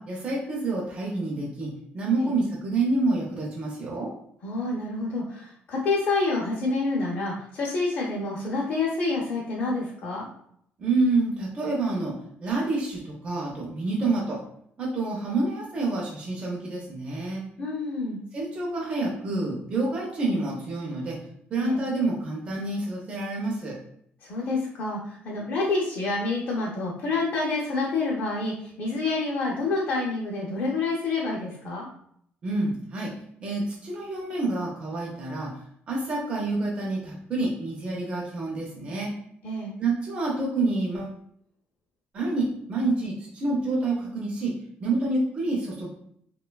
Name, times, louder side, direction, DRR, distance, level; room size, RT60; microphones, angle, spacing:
voice 1, 0.0-4.1 10.8-12.1 12.4-14.4 14.8-17.4 18.3-21.2 21.5-23.8 32.4-33.1 33.4-39.1 39.8-41.2 42.1-44.5 44.8-45.9, right 2 dB, 30° right, -4 dB, 0.5 m, -28 dB
voice 2, 4.4-10.3 17.6-18.2 21.6-21.8 24.2-31.9 39.4-39.7, left 3 dB, 45° left, -4 dB, 0.5 m, -28 dB
3.0 x 2.2 x 2.2 m, 0.68 s
cardioid pair, 180°, 4 cm